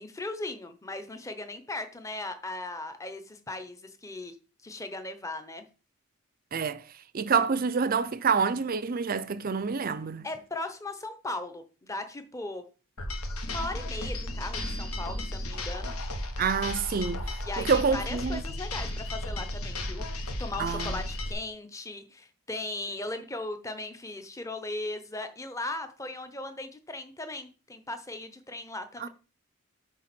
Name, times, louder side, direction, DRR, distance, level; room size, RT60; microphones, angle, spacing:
voice 1, 0.0-4.4 4.6-5.6 10.2-12.6 13.4-15.9 17.4-20.1 20.4-29.1, left 2 dB, 15° left, 0.7 m, -38 dB
voice 2, 6.5-6.8 7.1-10.3 16.4-17.2 17.6-18.4 20.6-21.0 29.0-29.1, right 5 dB, 40° right, 0.5 m, -27 dB
sound 1, 13.0-21.3, left 1 dB, 85° left, 1.3 m, -34 dB
8.3 x 3.4 x 6.0 m
head